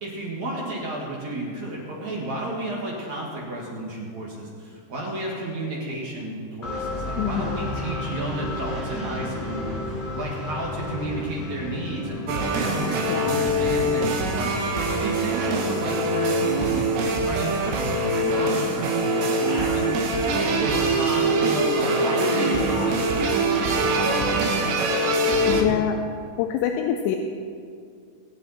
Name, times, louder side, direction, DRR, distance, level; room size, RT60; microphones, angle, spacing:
voice 1, 0.0-19.9 20.3-24.4 25.2-25.8, right 1 dB, 50° right, -3 dB, 2.6 m, -32 dB
sound 1, 6.6-18.4, left 2 dB, 15° left, 2.1 m, -34 dB
voice 2, 7.2-7.6 13.1-13.4 22.5-23.0 25.5-26.0 26.4-27.2, left 10 dB, 85° left, 4 dB, 2.9 m, -26 dB
sound 2, 12.3-25.6, right 2 dB, 80° right, 3.5 m, -23 dB
22.0 x 9.9 x 4.3 m, 2.3 s
omnidirectional pair, 5.0 m